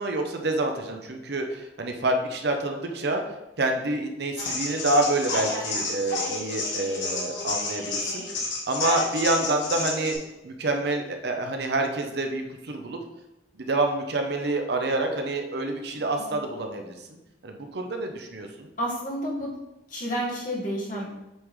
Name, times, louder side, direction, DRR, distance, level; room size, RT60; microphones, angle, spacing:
voice 1, 0.0-3.2 3.6-8.2 8.7-10.2 10.4-13.0 13.5-17.0 17.4-18.7, right 2 dB, 60° right, 4 dB, 0.7 m, -27 dB
sound 1, 4.4-10.2, left 2 dB, 75° left, 1.5 m, -30 dB
voice 2, 15.9-16.3 18.8-19.5 19.9-21.1, equal, 45° left, -4 dB, 1.6 m, -30 dB
8.1 x 3.7 x 3.1 m, 0.98 s
head